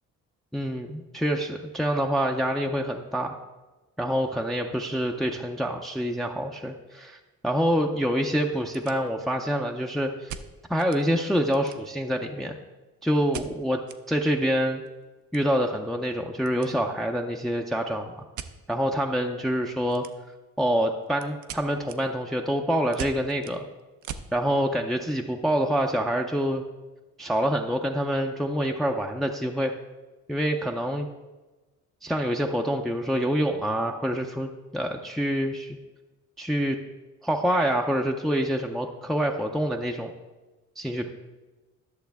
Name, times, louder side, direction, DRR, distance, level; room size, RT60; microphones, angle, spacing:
voice 1, 0.5-3.4 4.0-10.3 10.7-12.6 13.0-13.8 14.1-14.8 15.3-18.2 18.7-20.1 20.6-23.7 24.3-26.6 27.2-29.8 30.3-31.1 32.0-35.8 36.4-36.8 37.2-40.1 40.8-41.1, equal, ahead, 2 dB, 0.5 m, -26 dB
sound 1, 6.4-6.5 6.8-6.9 7.5-7.6 7.8-7.9 8.4-9.5 10.3-11.0 11.4-12.1 13.3-14.0 14.4-14.5 14.7-16.7 17.0-17.3 18.3-18.6 19.9-20.4 20.8-24.3, right 8 dB, 75° right, 0.6 m, -41 dB
11.5 x 6.4 x 3.5 m, 1.2 s
cardioid pair, 90°, 30 cm